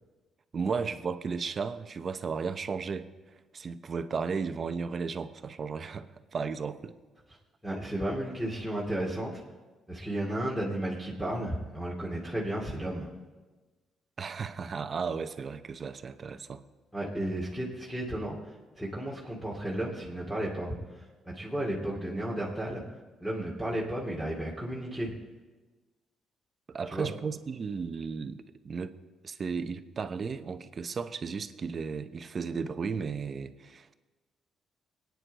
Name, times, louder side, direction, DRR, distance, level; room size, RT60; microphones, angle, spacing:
voice 1, 0.5-7.0 14.2-16.6 26.7-29.0 29.2-33.9, right 5 dB, 45° right, 11 dB, 0.8 m, -34 dB
voice 2, 7.6-9.4 9.9-13.1 16.9-18.4 18.8-22.8 23.2-25.1 26.9-27.1, right 1 dB, 5° left, -4 dB, 2.5 m, -33 dB
22.5 x 9.5 x 4.1 m, 1.3 s
cardioid pair, 90°, 0 cm